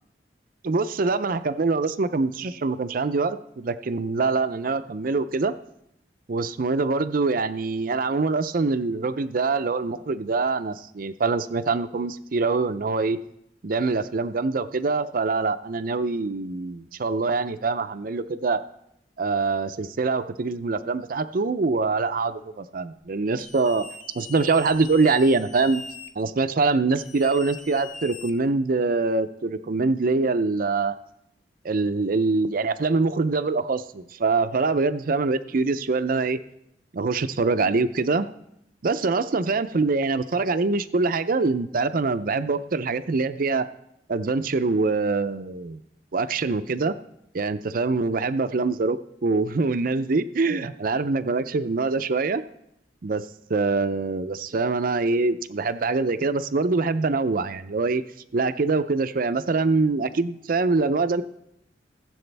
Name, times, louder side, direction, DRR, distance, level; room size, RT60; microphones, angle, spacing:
voice 1, 0.6-5.5 6.3-13.2 13.6-18.6 19.2-23.9 24.1-25.8 26.2-30.9 31.6-36.4 36.9-38.3 38.8-43.7 44.1-45.8 46.1-46.9 47.3-52.4 53.0-53.2 53.5-58.0 58.3-61.2, right 3 dB, 50° right, 11 dB, 0.5 m, -24 dB
sound 1, 23.4-26.1 26.9-28.7, left 4 dB, 45° left, 1.0 m, -41 dB
18.5 x 7.7 x 3.4 m, 0.78 s
head